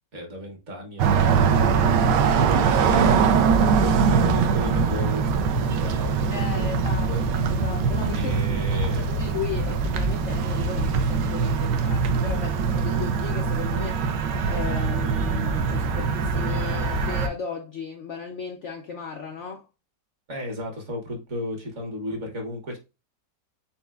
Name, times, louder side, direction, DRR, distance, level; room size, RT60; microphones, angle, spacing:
voice 1, 0.1-7.2 8.1-9.2 20.3-22.8, left 1 dB, 45° right, 1.2 m, -35 dB
sound 1, 1.0-17.3, right 5 dB, 75° right, 1.2 m, -22 dB
voice 2, 6.3-7.1 7.4-8.3 8.7-14.0 14.5-19.7, left 6 dB, 85° left, 0.6 m, -36 dB
4.5 x 4.1 x 2.3 m
omnidirectional pair, 1.9 m